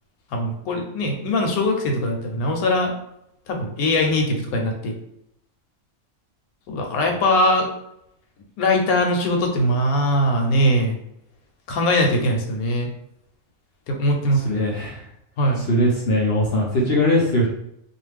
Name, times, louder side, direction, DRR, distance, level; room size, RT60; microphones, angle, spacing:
voice 1, 0.3-2.9 3.5-4.9 6.7-7.7 8.6-11.0 11.7-12.9 13.9-14.6 15.4-15.6, left 1 dB, 75° left, 3 dB, 1.1 m, -21 dB
voice 2, 14.4-15.0 15.7-17.5, left 1 dB, 60° left, -3 dB, 0.6 m, -20 dB
2.5 x 2.4 x 3.2 m, 0.77 s
omnidirectional pair, 1.6 m